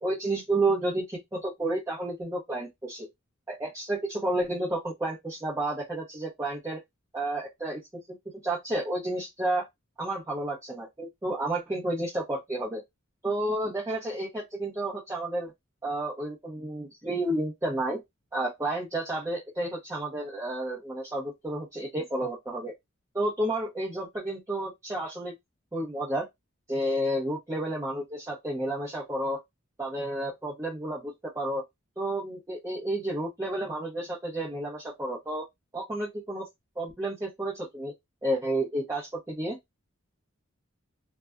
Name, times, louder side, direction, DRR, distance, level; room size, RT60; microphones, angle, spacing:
voice 1, 0.0-3.1 3.5-6.8 7.1-7.8 8.4-9.7 10.0-12.8 13.2-15.5 15.8-18.0 18.3-22.7 23.1-25.3 25.7-26.2 26.7-29.4 29.8-31.6 32.0-35.4 35.7-36.4 36.8-37.9 38.2-39.6, right 1 dB, 15° right, 0.8 m, -31 dB
2.5 x 2.2 x 2.2 m
head